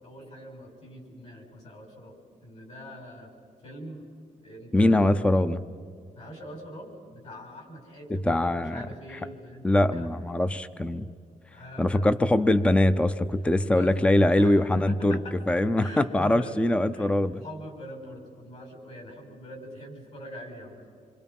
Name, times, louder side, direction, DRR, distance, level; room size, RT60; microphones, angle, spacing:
voice 1, 0.0-3.3 3.6-4.1 4.4-5.1 6.1-9.6 9.9-10.1 11.5-12.1 13.7-14.0 14.3-15.4 15.8-16.6 16.9-17.2 17.4-20.9, equal, 50° left, 2 dB, 5.9 m, -43 dB
voice 2, 4.7-5.6 8.2-8.8 9.6-11.1 11.8-15.2 15.5-17.4, left 1 dB, 10° left, 13 dB, 0.6 m, -22 dB
27.0 x 25.0 x 5.4 m, 2.4 s
wide cardioid pair, 160°, 14 cm